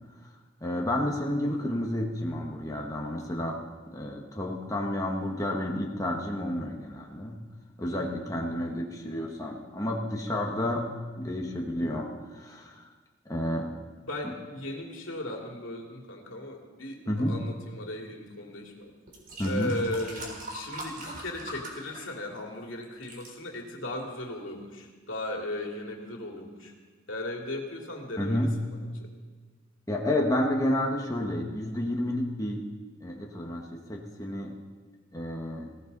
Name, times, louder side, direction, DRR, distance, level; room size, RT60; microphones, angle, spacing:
voice 1, 0.6-3.6 3.9-7.4 7.8-10.9 11.2-12.8 13.2-13.7 17.1-17.4 19.4-19.7 28.2-28.5 29.9-32.6 33.0-34.5 35.1-35.7, left 1 dB, 15° left, 0 dB, 1.3 m, -30 dB
voice 2, 7.8-8.2 14.0-18.9 19.4-26.8 27.1-29.1, left 1 dB, 80° left, 1 dB, 2.5 m, -37 dB
sound 1, 18.4-18.6 19.1-22.6 22.8-23.3 24.0-24.1, right 1 dB, 45° right, 3.8 m, -41 dB
20.0 x 17.0 x 4.0 m, 1.4 s
head